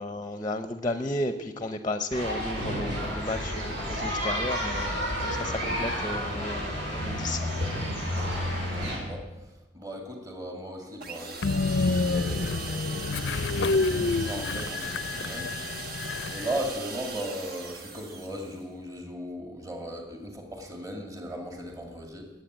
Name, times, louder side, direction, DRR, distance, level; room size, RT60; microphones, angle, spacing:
voice 1, 0.0-7.4, left 1 dB, 25° left, 9 dB, 0.7 m, -33 dB
sound 1, 2.1-9.0, equal, 70° right, 6.5 m, -30 dB
voice 2, 8.2-15.9 16.3-22.3, equal, 20° right, 2 dB, 2.2 m, -38 dB
sound 2, 11.0-18.6, right 3 dB, 55° right, 1.4 m, -39 dB
Train, 11.4-16.7, left 3 dB, 65° left, 0.5 m, -28 dB
19.0 x 8.3 x 8.0 m, 1.1 s
head